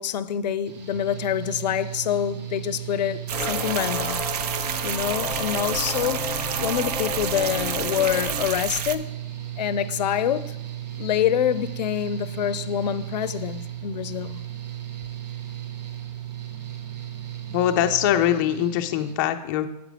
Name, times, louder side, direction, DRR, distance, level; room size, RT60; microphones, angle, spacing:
voice 1, 0.0-4.2 4.8-9.1 9.6-10.6 11.0-14.4, left 10 dB, 85° left, 0.5 m, -26 dB
Mechanical fan, 0.7-19.1, right 12 dB, 85° right, 1.4 m, -35 dB
sound 1, 3.3-8.5, left 1 dB, 10° right, 0.9 m, -32 dB
sound 2, 3.3-9.0, right 9 dB, 65° right, 0.6 m, -30 dB
voice 2, 17.5-19.7, left 11 dB, 30° left, 0.4 m, -22 dB
8.1 x 5.0 x 5.0 m
supercardioid pair, 165°, 21 cm